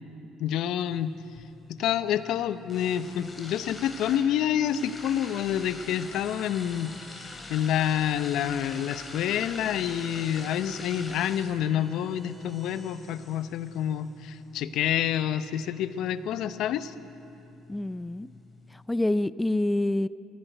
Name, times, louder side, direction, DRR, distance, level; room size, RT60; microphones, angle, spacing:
voice 1, 0.4-1.1 1.7-16.9, left 10 dB, 70° left, 13 dB, 0.8 m, -28 dB
sound 1, 0.9-18.9, left 2 dB, 25° left, 4.2 m, -45 dB
Bowed string instrument, 6.1-13.1, right 2 dB, 20° right, 4.1 m, -56 dB
voice 2, 17.7-18.3 18.7-20.1, left 1 dB, 10° left, 16 dB, 0.5 m, -27 dB
19.5 x 15.0 x 9.2 m, 3.0 s
supercardioid pair, 70°, 0 cm